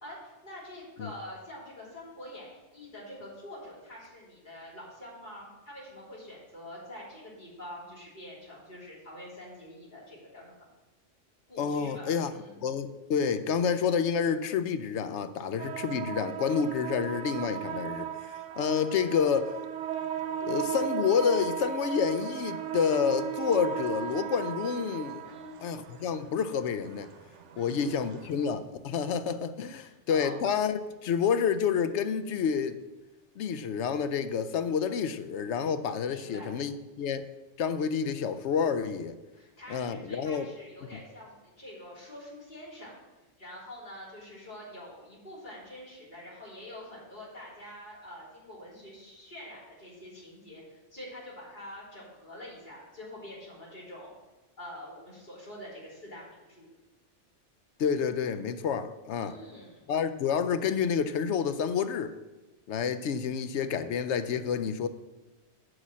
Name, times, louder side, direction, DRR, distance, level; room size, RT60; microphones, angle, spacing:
voice 1, 0.0-10.5 11.5-12.6 25.2-25.7 27.5-28.2 29.7-30.4 36.1-36.5 39.3-43.0 43.4-54.1 54.6-56.7 59.2-59.9, left 1 dB, 40° left, 3.4 m, -46 dB
voice 2, 11.6-12.3 12.6-18.1 18.6-19.6 20.4-25.2 25.6-27.1 27.6-32.8 33.4-37.3 37.6-39.2 39.7-40.5 57.8-59.4 59.9-62.1 62.7-64.9, left 6 dB, 75° left, 0.9 m, -29 dB
sound 1, 15.6-28.6, right 9 dB, 80° right, 1.0 m, -36 dB
8.3 x 5.0 x 7.4 m
omnidirectional pair, 1.2 m